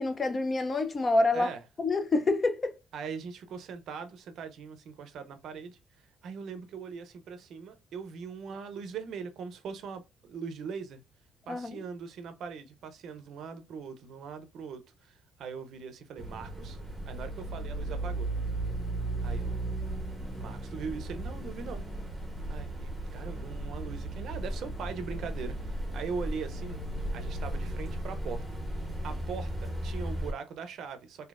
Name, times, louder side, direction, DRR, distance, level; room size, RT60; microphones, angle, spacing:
voice 1, 0.0-1.5 1.8-2.8 11.5-11.8, left 2 dB, 25° left, 0.4 m, -27 dB
voice 2, 2.9-5.8 6.2-11.0 11.5-16.8 17.1-18.3 19.2-19.6 20.4-21.8 22.5-26.8 27.1-28.4 29.0-31.3, right 6 dB, 60° right, 0.5 m, -41 dB
sound 1, 16.2-30.3, right 1 dB, 10° right, 0.8 m, -35 dB
3.9 x 2.6 x 2.4 m
cardioid pair, 130°, 0 cm